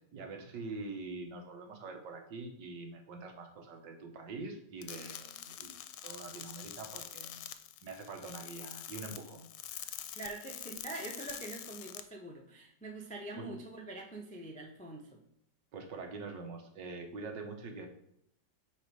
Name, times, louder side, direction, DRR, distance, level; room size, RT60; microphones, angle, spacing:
voice 1, 0.1-7.5 7.8-10.0 13.4-13.6 15.7-17.9, right 3 dB, 70° right, 4 dB, 1.7 m, -45 dB
sound 1, 4.8-12.0, left 11 dB, 75° left, 1.2 m, -45 dB
voice 2, 10.1-15.2, right 2 dB, 10° left, 1 dB, 0.3 m, -44 dB
9.0 x 3.4 x 4.7 m, 0.75 s
omnidirectional pair, 2.0 m